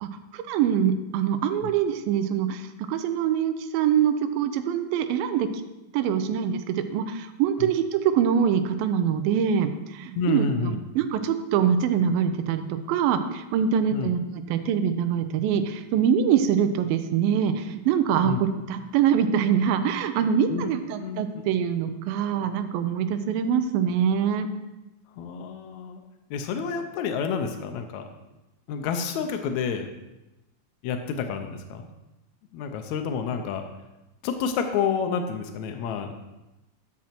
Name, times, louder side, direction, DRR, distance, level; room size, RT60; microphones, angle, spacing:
voice 1, 0.0-5.6 5.9-18.3 18.7-24.5, right 8 dB, 80° right, 9 dB, 2.4 m, -24 dB
voice 2, 10.2-10.8 13.9-14.1 18.2-18.4 20.5-20.7 21.0-21.6 25.2-26.0 26.3-28.0 28.7-29.9 30.8-31.9 32.5-33.7 34.2-36.1, left 5 dB, 90° left, 6 dB, 1.6 m, -29 dB
12.5 x 6.2 x 4.4 m, 0.99 s
omnidirectional pair, 4.2 m